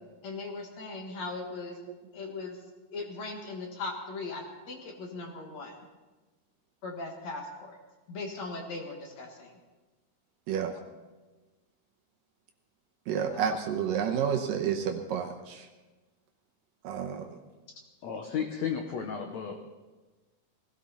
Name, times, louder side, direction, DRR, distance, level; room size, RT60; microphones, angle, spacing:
voice 1, 0.2-1.8 2.1-2.6 2.9-5.7 6.8-7.8 8.1-9.5 13.3-13.6, left 3 dB, 55° left, 2 dB, 2.4 m, -39 dB
voice 2, 13.1-15.7 16.8-17.3, right 8 dB, 70° right, 3 dB, 2.3 m, -30 dB
voice 3, 18.0-19.5, left 7 dB, 80° left, 3 dB, 1.6 m, -33 dB
19.5 x 16.5 x 4.2 m, 1.2 s
omnidirectional pair, 4.6 m